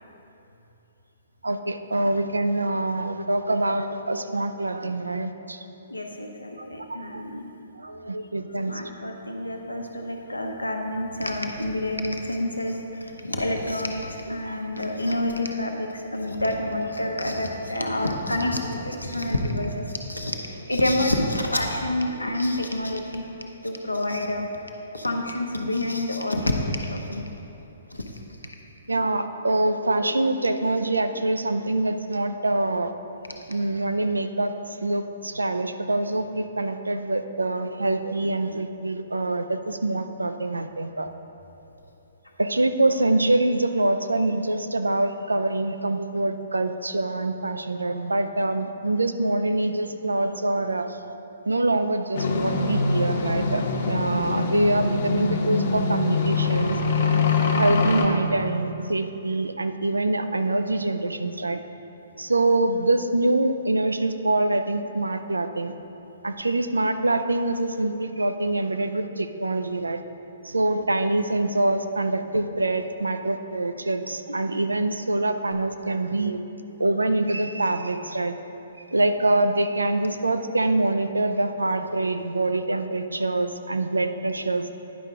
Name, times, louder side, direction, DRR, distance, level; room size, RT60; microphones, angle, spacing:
voice 1, 1.4-5.6 6.9-7.2 7.8-8.9 14.3-14.9 28.9-32.9 33.5-41.1 42.4-51.1 51.4-56.8 57.6-61.6 62.2-65.7 66.2-70.0 70.4-76.4 76.8-78.4 78.9-84.7, right 2 dB, 80° right, 8 dB, 0.4 m, -25 dB
voice 2, 5.9-7.5 8.7-20.4 20.7-23.2 23.6-24.5 24.9-27.2 27.9-28.0 57.5-57.6, left 1 dB, 85° left, 2 dB, 0.8 m, -28 dB
sound 1, 52.1-58.1, left 3 dB, 50° left, 1.0 m, -24 dB
10.0 x 5.5 x 3.7 m, 2.9 s
figure-of-eight pair, 125°, 0 cm